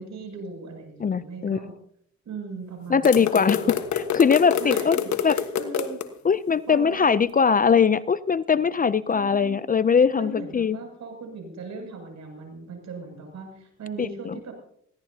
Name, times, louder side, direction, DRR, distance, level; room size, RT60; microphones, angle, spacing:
voice 1, 0.0-1.8 2.2-3.3 3.6-3.7 4.6-6.0 6.7-7.3 9.1-9.6 10.1-14.5, right 4 dB, 65° right, 3 dB, 7.1 m, -38 dB
voice 2, 1.0-1.6 2.9-5.0 5.2-5.4 6.2-10.8 14.0-14.4, left 6 dB, 30° left, 16 dB, 0.5 m, -21 dB
sound 1, 3.0-6.1, left 9 dB, 65° left, 1.4 m, -27 dB
21.5 x 16.5 x 2.8 m, 0.67 s
cardioid pair, 90°, 30 cm